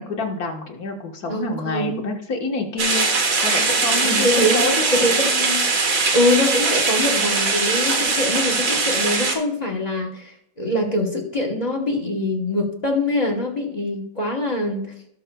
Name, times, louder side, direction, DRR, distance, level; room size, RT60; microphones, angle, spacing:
voice 1, 0.0-3.1 3.4-5.1, left 3 dB, 50° left, 2 dB, 1.8 m, -27 dB
voice 2, 1.3-2.1 4.0-14.9, left 1 dB, 25° left, 2 dB, 1.0 m, -24 dB
sound 1, 2.8-9.4, right 3 dB, 50° right, 1.6 m, -21 dB
17.0 x 6.4 x 2.3 m, 0.72 s
omnidirectional pair, 2.1 m